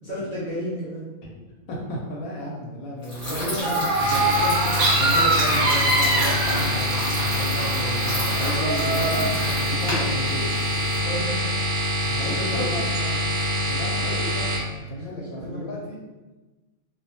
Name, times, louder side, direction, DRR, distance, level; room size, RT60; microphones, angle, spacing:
voice 1, 0.0-1.1 3.3-3.8 4.3-4.5 9.1-9.3 11.0-11.6 12.4-12.6 12.9-13.1 15.4-15.6, equal, 15° right, -10 dB, 0.7 m, -32 dB
voice 2, 1.7-3.5 4.0-4.4 5.0-10.5 12.0-13.2 13.6-14.5 14.9-16.0, left 1 dB, 75° left, -2 dB, 1.1 m, -33 dB
sound 1, 3.0-11.0, left 1 dB, 30° left, 1.0 m, -31 dB
sound 2, 3.6-7.0 7.5-9.3, right 2 dB, 85° right, 1.0 m, -24 dB
sound 3, 3.9-14.6, left 1 dB, 65° right, 0.6 m, -25 dB
2.5 x 2.2 x 2.7 m, 1.2 s
omnidirectional pair, 1.5 m